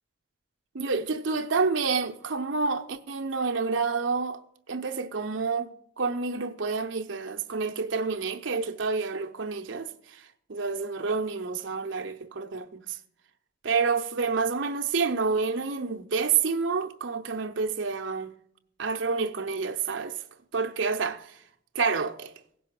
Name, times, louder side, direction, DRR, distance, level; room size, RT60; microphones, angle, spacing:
voice 1, 0.7-4.4 4.7-5.7 6.0-10.2 10.5-13.0 13.6-18.3 18.8-20.2 20.5-21.4 21.7-22.3, right 4 dB, 75° right, 0.7 m, -28 dB
16.0 x 5.5 x 7.5 m
head